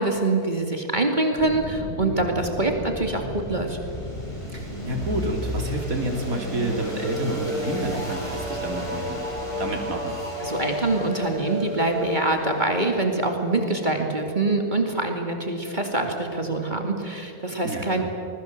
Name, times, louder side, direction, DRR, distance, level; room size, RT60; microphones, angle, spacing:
voice 1, 0.0-3.8 10.4-18.0, right 2 dB, 30° right, 3 dB, 2.5 m, -25 dB
sound 1, 1.4-14.2, equal, 20° left, 5.5 m, -32 dB
voice 2, 4.5-9.2 9.6-10.1 17.6-18.0, right 1 dB, 60° right, 2 dB, 3.7 m, -29 dB
27.0 x 21.0 x 7.7 m, 2.8 s
omnidirectional pair, 1.6 m